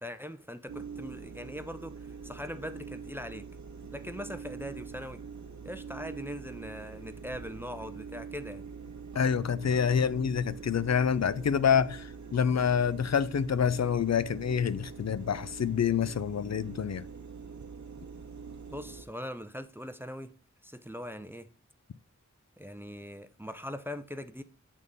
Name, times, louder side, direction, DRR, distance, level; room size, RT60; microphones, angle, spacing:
voice 1, 0.0-3.5 3.9-5.2 5.6-8.6 18.7-20.3 20.6-21.5 22.6-24.4, equal, 5° right, 0.5 m, -41 dB
sound 1, 0.7-19.0, right 5 dB, 65° right, 0.7 m, -44 dB
voice 2, 9.2-17.0, left 7 dB, 60° left, 0.4 m, -27 dB
8.3 x 3.7 x 3.9 m
wide cardioid pair, 55°, 30 cm